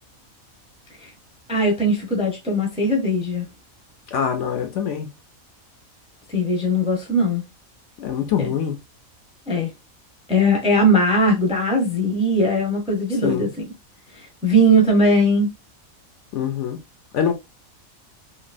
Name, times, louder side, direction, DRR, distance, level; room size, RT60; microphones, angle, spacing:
voice 1, 1.5-3.5 6.3-7.4 9.5-9.7 10.3-13.5 14.4-15.5, equal, 5° right, 0.6 m, -19 dB
voice 2, 4.1-5.1 8.0-8.8 13.2-13.5 16.3-16.8 17.1-17.3, left 8 dB, 65° left, 0.9 m, -24 dB
3.0 x 2.6 x 2.5 m
omnidirectional pair, 1.5 m